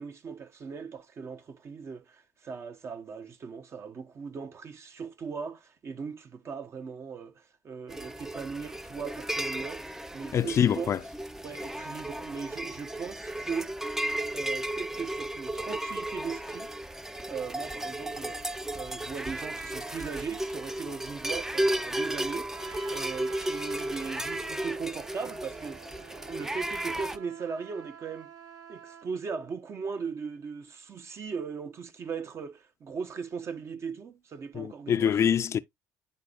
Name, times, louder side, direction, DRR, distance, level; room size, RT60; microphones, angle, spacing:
voice 1, 0.0-10.9 11.4-13.7 14.3-16.7 17.3-18.4 18.7-22.5 22.9-25.9 26.3-28.3 28.7-35.2, right 5 dB, 50° right, 1.0 m, -38 dB
sound 1, 7.9-27.2, right 1 dB, 5° right, 0.5 m, -34 dB
voice 2, 10.3-11.0 34.5-35.6, left 8 dB, 50° left, 0.5 m, -25 dB
Trumpet, 22.5-29.1, right 7 dB, 65° right, 1.3 m, -48 dB
10.5 x 4.1 x 2.4 m
supercardioid pair, 65°, 6 cm